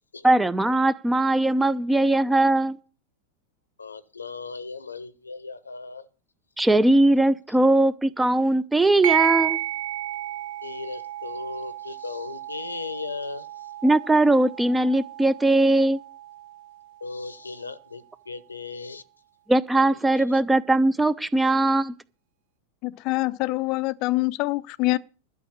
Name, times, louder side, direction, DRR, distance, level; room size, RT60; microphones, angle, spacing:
voice 1, 0.2-2.8 6.6-9.6 13.8-16.0 19.5-21.9, right 2 dB, 10° right, 0.7 m, -20 dB
voice 2, 3.8-6.1 10.6-13.5 17.0-19.0 20.1-20.2, left 4 dB, 85° left, 0.9 m, -36 dB
sound 1, 9.0-18.0, right 13 dB, 55° right, 0.7 m, -32 dB
voice 3, 22.8-25.0, left 20 dB, 45° left, 0.6 m, -25 dB
12.0 x 6.3 x 8.7 m
figure-of-eight pair, 90°, 0 cm